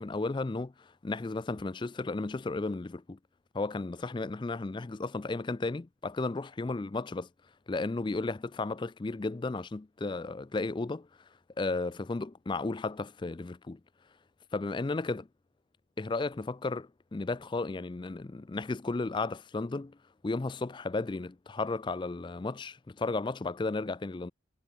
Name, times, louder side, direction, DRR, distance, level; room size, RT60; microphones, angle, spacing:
voice 1, 0.0-3.2 3.5-7.3 7.7-11.1 11.6-13.8 14.5-15.3 16.0-20.0 20.2-24.3, left 3 dB, 25° left, 0.4 m, -34 dB
head